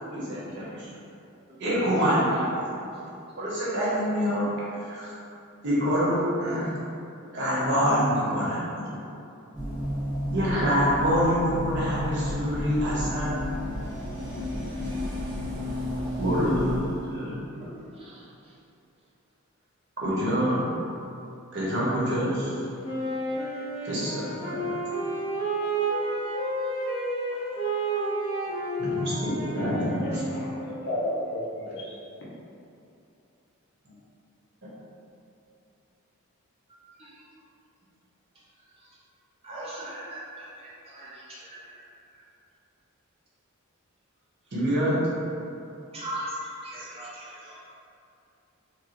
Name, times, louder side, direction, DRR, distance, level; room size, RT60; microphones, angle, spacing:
voice 1, 0.1-0.9 1.6-2.5 3.4-5.1 5.6-6.7 7.3-9.0 10.3-13.4 13.9-16.8 17.1-17.4 20.0-20.6 21.5-22.5 23.8-24.6 28.8-30.3 34.6-34.7 44.5-45.0, equal, 55° right, -8 dB, 1.0 m, -27 dB
sound 1, 9.5-16.8, equal, 5° right, 1.2 m, -32 dB
voice 2, 17.5-18.2 37.0-37.2 39.4-41.8 45.9-47.6, right 1 dB, 25° right, -8 dB, 0.5 m, -39 dB
Wind instrument woodwind instrument, 22.8-30.8, right 2 dB, 20° left, 1.2 m, -30 dB
voice 3, 29.8-31.9, left 1 dB, 55° left, -6 dB, 0.7 m, -33 dB
4.1 x 2.1 x 3.0 m, 2.7 s
head